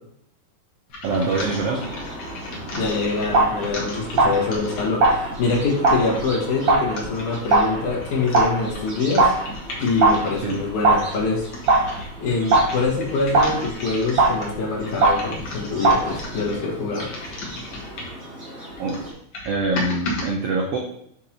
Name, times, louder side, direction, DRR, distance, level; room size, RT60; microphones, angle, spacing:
sound 1, 0.9-10.8 11.3-18.3 18.7-20.3, left 1 dB, 50° left, 1.6 m, -36 dB
sound 2, 1.0-19.1, right 1 dB, 35° right, 3.4 m, -39 dB
voice 1, 1.0-1.9 10.4-10.6 18.8-19.0 19.4-20.8, right 3 dB, 80° right, 1 dB, 1.3 m, -24 dB
voice 2, 2.7-9.3 9.8-11.5 12.2-17.1, left 3 dB, 70° left, -3 dB, 2.9 m, -25 dB
sound 3, 2.7-16.5, right 2 dB, 60° right, 1.8 m, -22 dB
7.4 x 5.9 x 2.8 m, 0.69 s
omnidirectional pair, 3.6 m